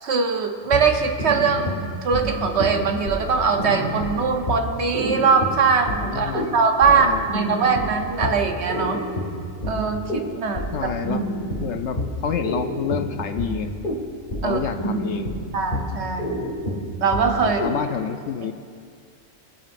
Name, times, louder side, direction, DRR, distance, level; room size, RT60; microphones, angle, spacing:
voice 1, 0.0-9.0 9.6-10.7 14.4-14.6 15.5-16.4 17.0-17.6, right 5 dB, 60° right, 5 dB, 1.0 m, -21 dB
sound 1, 0.7-17.8, equal, 40° left, 2.0 m, -29 dB
voice 2, 6.0-6.6 6.9-7.2 10.7-11.2 11.6-13.7 14.4-15.4 17.4-18.5, left 7 dB, 65° left, 7 dB, 0.8 m, -28 dB
23.0 x 8.6 x 2.5 m, 2.2 s
omnidirectional pair, 1.4 m